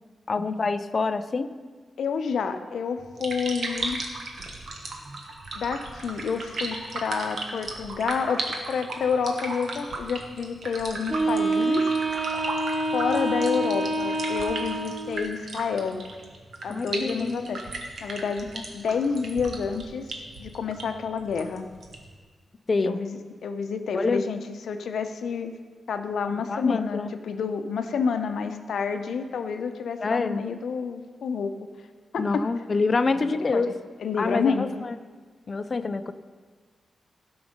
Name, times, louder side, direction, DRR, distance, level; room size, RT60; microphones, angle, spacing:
voice 1, 0.3-1.5 16.7-17.6 18.6-18.7 22.7-23.0 23.9-24.3 26.3-27.1 30.0-30.4 32.2-33.7 34.2-34.9 35.5-36.1, left 3 dB, 35° left, 11 dB, 0.4 m, -26 dB
voice 2, 2.0-4.0 5.5-11.8 12.9-16.0 16.6-17.6 18.0-20.1 20.4-21.7 22.8-24.4 24.7-25.5 25.9-31.5 32.1-32.4 33.1-33.6 34.0-34.8, left 5 dB, 75° left, 8 dB, 0.8 m, -29 dB
sound 1, 3.0-22.1, right 2 dB, 60° right, 1.4 m, -36 dB
Wind instrument woodwind instrument, 11.1-15.2, right 2 dB, 35° right, 1.7 m, -26 dB
16.0 x 6.0 x 5.2 m, 1.5 s
wide cardioid pair, 165°, 0 cm